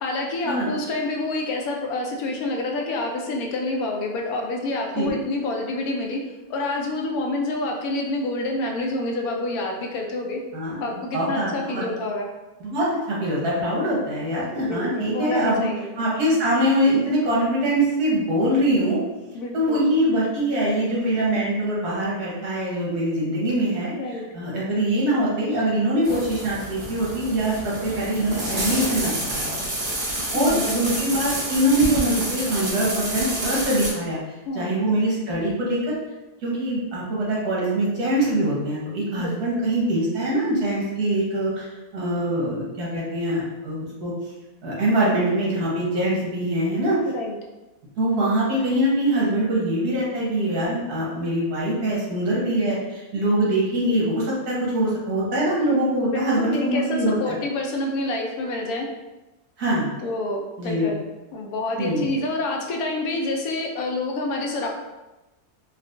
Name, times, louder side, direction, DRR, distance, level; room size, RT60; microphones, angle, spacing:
voice 1, 0.0-6.2 6.5-10.4 10.8-12.3 14.6-15.9 19.3-19.8 24.0-24.2 30.3-31.0 34.5-34.7 39.2-39.6 47.1-47.3 56.0-58.9 60.0-61.0 61.3-64.7, left 2 dB, 75° left, 1 dB, 1.0 m, -28 dB
voice 2, 10.5-11.8 12.6-15.6 16.0-19.0 19.5-29.6 29.9-35.9 36.4-44.1 44.6-47.0 48.0-57.3 59.6-59.9 60.6-60.9 61.8-62.1, right 1 dB, 85° right, -6 dB, 1.7 m, -23 dB
sound 1, 26.0-33.9, right 1 dB, 35° right, 1.0 m, -29 dB
4.3 x 2.3 x 2.4 m, 1.0 s
omnidirectional pair, 1.6 m